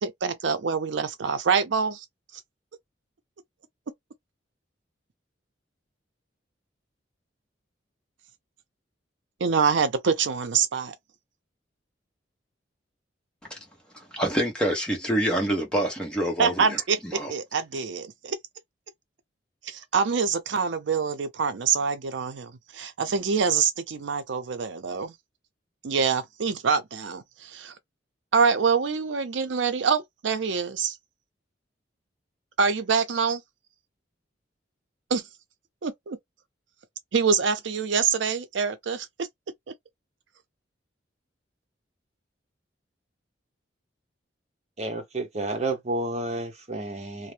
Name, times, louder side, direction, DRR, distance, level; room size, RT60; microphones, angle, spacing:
voice 1, 0.0-2.1 9.4-10.9 16.4-18.4 19.6-25.1 25.8-27.7 28.3-31.0 32.6-33.4 35.1-35.2 35.8-36.2 37.1-39.3, right 5 dB, 80° right, 0.5 m, -25 dB
voice 2, 14.1-16.8 17.1-17.3, right 1 dB, 5° left, 0.9 m, -26 dB
voice 3, 44.8-47.3, right 2 dB, 35° right, 0.8 m, -30 dB
2.7 x 2.0 x 3.2 m
head